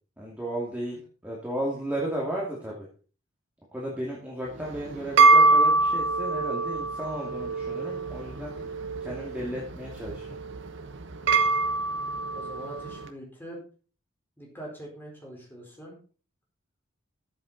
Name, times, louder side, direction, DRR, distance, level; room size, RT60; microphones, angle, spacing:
voice 1, 0.2-2.9 3.7-8.7 9.0-10.4, right 1 dB, 5° right, -5 dB, 2.5 m, -34 dB
sound 1, 4.5-13.0, right 3 dB, 55° right, 1.1 m, -24 dB
voice 2, 11.1-11.5 12.3-13.6 14.4-15.9, right 1 dB, 10° left, -2 dB, 4.2 m, -43 dB
13.5 x 7.8 x 4.1 m, 0.39 s
head